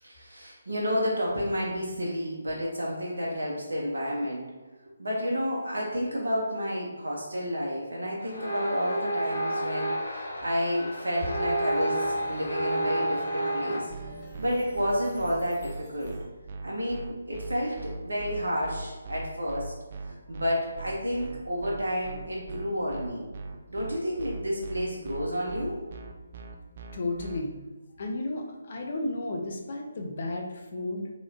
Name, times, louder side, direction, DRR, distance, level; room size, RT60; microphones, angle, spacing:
voice 1, 0.0-4.5 5.0-13.9 14.4-16.2 16.6-19.7 20.3-23.2 23.7-25.8, equal, 65° right, -4 dB, 0.8 m, -30 dB
sound 1, 8.2-13.8, right 1 dB, 65° left, 1.3 m, -30 dB
Plucked string instrument, 11.2-16.5, right 1 dB, ahead, 0.8 m, -47 dB
sound 2, 13.9-27.4, right 3 dB, 40° right, 0.3 m, -40 dB
voice 2, 26.9-27.6 28.0-31.1, left 2 dB, 40° left, 2 dB, 0.6 m, -33 dB
4.0 x 3.0 x 2.7 m, 1.3 s
figure-of-eight pair, 145°, 0 cm